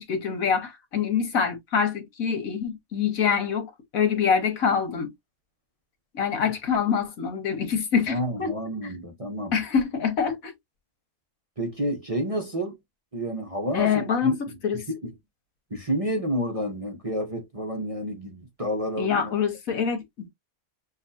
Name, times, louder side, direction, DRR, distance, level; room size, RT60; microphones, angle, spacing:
voice 1, 0.0-5.1 6.1-8.5 9.5-10.5 13.7-14.8 19.0-20.3, left 6 dB, 70° left, 1.7 m, -25 dB
voice 2, 8.1-9.6 11.6-12.8 13.1-14.4 14.7-15.1 15.7-19.3, equal, 30° right, 0.8 m, -30 dB
6.4 x 2.5 x 2.7 m
omnidirectional pair, 1.5 m